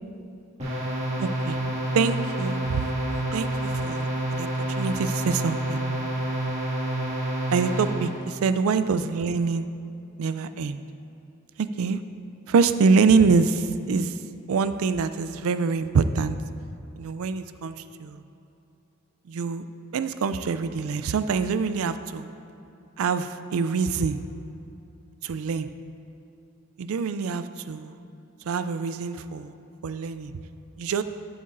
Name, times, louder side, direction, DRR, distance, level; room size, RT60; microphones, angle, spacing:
sound 1, 0.6-8.2, right 1 dB, 30° right, 2.1 m, -28 dB
voice 1, 1.2-1.6 1.9-2.9 3.3-4.5 4.8-5.8 7.5-9.7 10.2-10.8 11.6-12.0 12.5-14.2 14.5-16.4 17.0-17.7 18.0-18.2 19.3-19.6 19.9-22.3 23.0-24.2 25.2-25.7 26.8-27.9 28.5-29.5 29.8-30.3 30.8-31.0, right 5 dB, 70° right, 12 dB, 0.4 m, -25 dB
12.5 x 7.9 x 2.6 m, 2.8 s
head